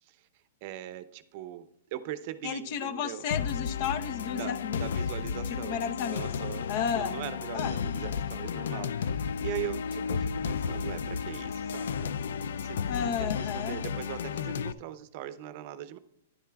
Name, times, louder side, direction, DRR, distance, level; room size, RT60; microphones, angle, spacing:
voice 1, 0.6-3.2 4.4-4.5 4.8-12.1 12.6-16.0, right 12 dB, 50° right, 14 dB, 0.6 m, -40 dB
voice 2, 2.4-4.8 5.6-6.3 6.7-7.1 7.5-7.7 12.9-13.8, left 8 dB, 50° left, 12 dB, 0.8 m, -32 dB
sound 1, 3.3-14.7, left 6 dB, 75° left, 0.3 m, -33 dB
11.0 x 10.0 x 2.3 m, 0.77 s
hypercardioid pair, 130°, 0 cm